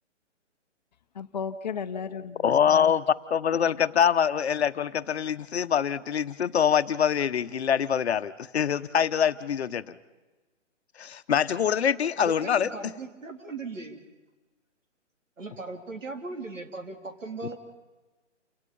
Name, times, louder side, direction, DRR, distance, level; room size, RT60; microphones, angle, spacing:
voice 1, 1.1-3.0 3.5-3.8, left 6 dB, 35° left, 10 dB, 0.9 m, -35 dB
voice 2, 2.4-3.0 3.3-10.0 11.0-12.9, left 8 dB, 60° left, 12 dB, 1.0 m, -24 dB
voice 3, 12.0-14.0 15.4-17.6, right 3 dB, 90° right, 5 dB, 3.6 m, -38 dB
29.0 x 17.5 x 5.4 m, 1.2 s
hypercardioid pair, 160°, 37 cm